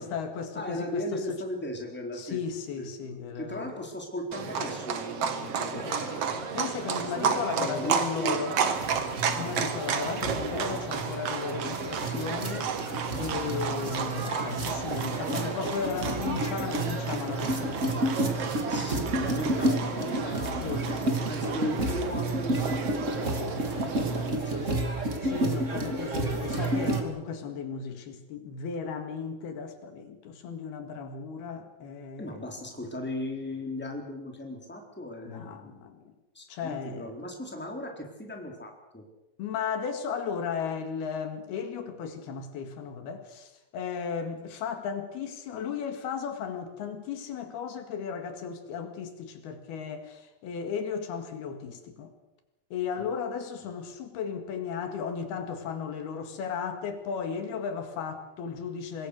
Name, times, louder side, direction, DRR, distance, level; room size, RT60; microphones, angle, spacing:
voice 1, 0.0-1.4 2.1-3.8 5.4-8.5 9.4-12.7 13.2-18.3 18.9-19.0 20.6-21.2 25.2-32.5 35.3-36.1 36.5-37.1 39.4-52.1 52.7-59.1, left 6 dB, 80° left, 3.9 m, -35 dB
voice 2, 0.5-2.4 2.8-6.5 7.1-8.4 9.3-9.8 18.6-24.9 32.2-35.8 36.3-39.0 53.0-53.1, left 1 dB, 5° left, 3.5 m, -37 dB
Livestock farm animals working animals, 4.3-24.3, right 6 dB, 50° right, 2.0 m, -33 dB
sound 1, 8.7-27.0, right 1 dB, 25° right, 2.3 m, -31 dB
25.5 x 21.0 x 6.5 m
omnidirectional pair, 4.5 m